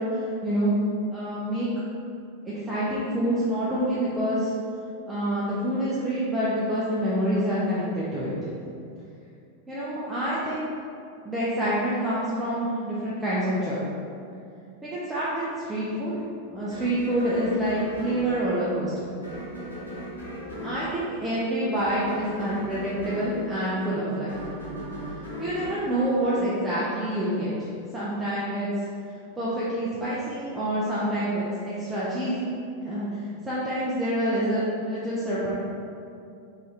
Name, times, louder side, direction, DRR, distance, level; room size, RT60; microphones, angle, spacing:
voice 1, 0.1-0.7 1.1-1.7 2.4-4.5 5.1-8.3 9.7-10.6 11.2-13.9 14.8-16.1 16.5-19.1 20.6-24.4 25.4-27.5 27.9-28.7 29.4-32.6 32.8-35.5, right 1 dB, 10° right, -9 dB, 0.6 m, -27 dB
sound 1, 16.7-26.9, equal, 75° left, 1.0 m, -38 dB
3.7 x 2.6 x 3.3 m, 2.5 s
figure-of-eight pair, 90°, 0 cm